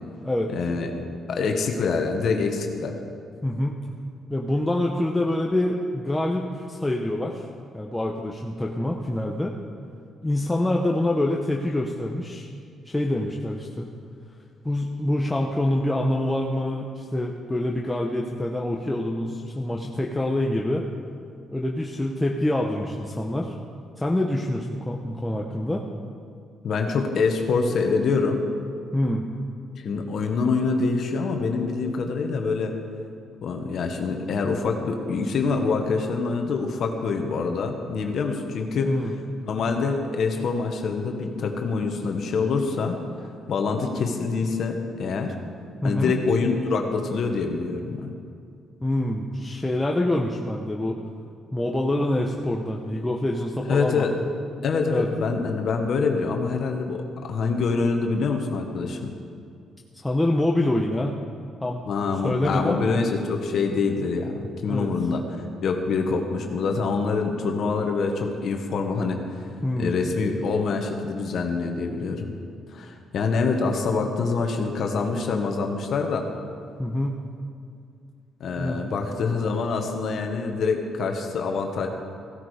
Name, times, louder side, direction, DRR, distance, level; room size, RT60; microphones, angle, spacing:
voice 1, 0.5-3.0 26.6-28.4 29.8-32.7 33.4-38.9 39.4-43.0 43.5-45.3 45.8-48.1 53.7-54.1 54.6-59.1 61.9-65.4 65.6-69.2 69.8-72.3 72.7-76.3 78.4-81.9, left 4 dB, 65° left, 3 dB, 1.4 m, -25 dB
voice 2, 3.4-3.8 4.3-7.5 7.7-9.6 10.2-12.5 12.8-13.9 14.6-20.9 21.5-23.5 24.0-25.8 28.9-29.3 38.9-39.1 45.8-46.1 48.8-51.0 51.5-54.1 54.9-55.1 60.0-61.2 61.6-61.8 62.2-62.9 64.7-64.9 69.6-69.9 76.8-77.2 78.6-78.8, left 1 dB, 10° left, 0 dB, 1.0 m, -26 dB
15.5 x 12.5 x 5.0 m, 2.3 s
cardioid pair, 90°, 0 cm